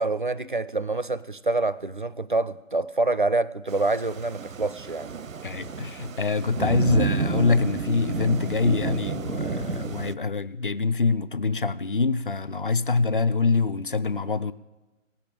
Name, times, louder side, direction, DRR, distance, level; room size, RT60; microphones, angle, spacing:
voice 1, 0.0-5.1, right 2 dB, 40° right, 0.4 m, -26 dB
Thunder / Rain, 3.7-10.2, right 5 dB, 85° right, 0.6 m, -31 dB
voice 2, 5.4-14.5, left 4 dB, 45° left, 0.5 m, -25 dB
18.0 x 7.2 x 7.6 m
figure-of-eight pair, 155°, 39 cm